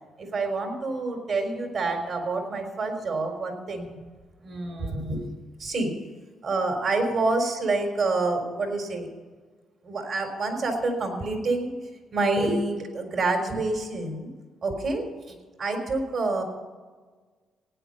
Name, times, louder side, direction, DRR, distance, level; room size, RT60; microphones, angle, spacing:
voice 1, 0.2-4.0 4.4-5.3 5.6-5.9 6.4-9.1 9.8-11.7 12.1-14.3 14.6-16.4, right 3 dB, 55° right, 4 dB, 3.9 m, -27 dB
16.5 x 9.7 x 5.6 m, 1.4 s
cardioid pair, 90°, 0 cm